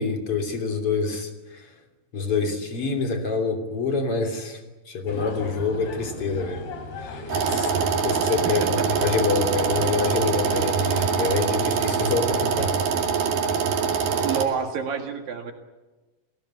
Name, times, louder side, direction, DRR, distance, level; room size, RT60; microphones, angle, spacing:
voice 1, 0.0-1.7 2.1-4.6 4.9-6.7 7.0-7.7 8.0-12.8, left 4 dB, 40° left, 4 dB, 3.7 m, -26 dB
sound 1, 5.1-11.3, left 4 dB, 90° left, 5.3 m, -37 dB
sound 2, 7.3-14.5, right 6 dB, 85° right, 4.3 m, -24 dB
voice 2, 8.4-8.9 14.2-15.5, right 6 dB, 70° right, 4 dB, 3.6 m, -28 dB
30.0 x 18.0 x 8.3 m, 1.2 s
omnidirectional pair, 4.4 m